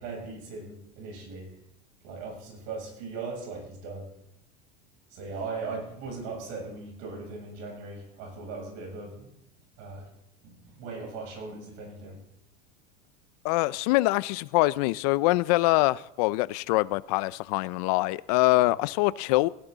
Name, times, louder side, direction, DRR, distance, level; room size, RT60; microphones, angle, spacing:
voice 1, 0.0-1.6 2.0-4.1 5.1-9.3 9.8-10.1 10.4-12.2, right 4 dB, 60° right, 7.5 m, -39 dB
voice 2, 13.4-19.5, left 20 dB, 65° left, 0.5 m, -24 dB
18.0 x 17.5 x 4.0 m
supercardioid pair, 150°, 21 cm